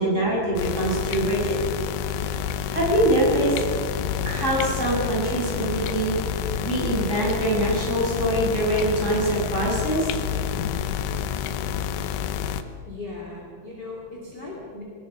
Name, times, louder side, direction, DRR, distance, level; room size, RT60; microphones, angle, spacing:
voice 1, 0.0-1.6 2.7-3.5 4.2-6.2 6.6-10.1, right 1 dB, 15° right, -5 dB, 6.6 m, -23 dB
sound 1, 0.6-12.6, left 9 dB, 85° left, 3.3 m, -29 dB
voice 2, 12.8-14.8, left 3 dB, 25° left, -3 dB, 3.3 m, -38 dB
24.5 x 20.5 x 5.6 m, 2.2 s
omnidirectional pair, 5.3 m